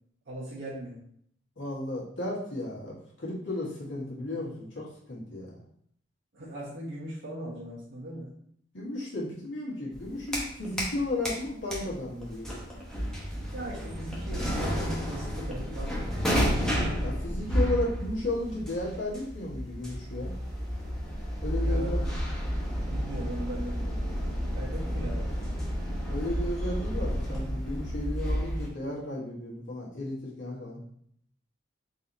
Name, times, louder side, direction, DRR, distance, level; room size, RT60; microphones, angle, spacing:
voice 1, 0.3-1.0 6.3-8.3 13.0-13.1 13.5-16.2 21.6-22.2 22.8-25.4, right 1 dB, 80° right, -7 dB, 1.0 m, -39 dB
voice 2, 1.6-5.6 8.7-12.5 17.0-20.3 21.4-22.0 26.1-30.8, left 1 dB, 90° left, -5 dB, 1.5 m, -34 dB
sound 1, 9.9-11.0 11.2-28.7, equal, 5° left, 0.9 m, -31 dB
4.0 x 2.8 x 4.0 m, 0.67 s
head